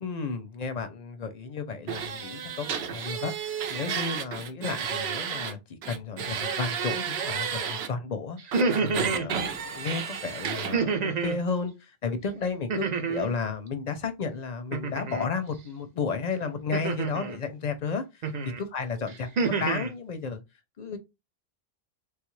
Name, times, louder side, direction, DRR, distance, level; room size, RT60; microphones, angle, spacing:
voice 1, 0.0-3.3 3.7-8.4 8.8-18.3 18.6-20.4 20.8-21.0, left 5 dB, 50° left, 0.5 m, -33 dB
sound 1, 1.9-5.5 5.8-7.9 8.5-10.7, right 7 dB, 80° right, 0.8 m, -32 dB
sound 2, 8.4-9.3 10.7-11.4 12.7-13.4 14.7-15.3 16.7-17.4 18.2-18.6 19.1-19.9, right 4 dB, 50° right, 0.6 m, -28 dB
3.3 x 2.3 x 3.0 m
omnidirectional pair, 1.0 m